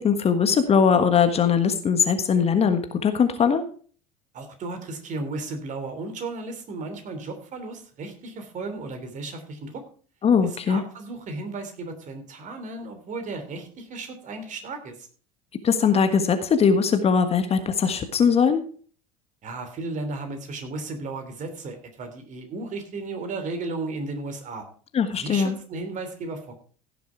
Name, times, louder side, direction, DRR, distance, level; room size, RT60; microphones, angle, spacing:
voice 1, 0.0-3.6 10.2-10.8 15.6-18.6 24.9-25.6, left 6 dB, 35° left, 8 dB, 1.5 m, -20 dB
voice 2, 4.3-9.8 10.7-15.1 19.4-24.6 25.2-26.6, right 3 dB, 40° right, 7 dB, 3.1 m, -34 dB
16.0 x 7.0 x 4.6 m, 0.43 s
figure-of-eight pair, 70°, 19 cm